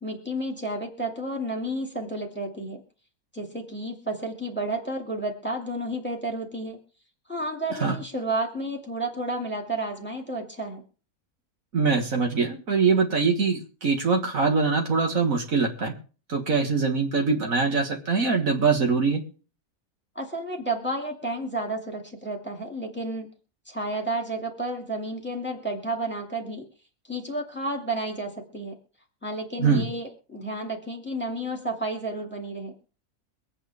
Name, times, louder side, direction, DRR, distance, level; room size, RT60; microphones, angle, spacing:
voice 1, 0.0-2.8 3.3-6.8 7.3-10.8 20.2-23.3 23.7-26.6 27.1-28.7 29.2-32.7, right 1 dB, 5° left, 2 dB, 2.4 m, -31 dB
voice 2, 11.7-15.9 16.3-19.2 29.6-29.8, right 4 dB, 60° right, 3 dB, 2.0 m, -23 dB
24.0 x 8.9 x 3.5 m, 0.37 s
omnidirectional pair, 1.6 m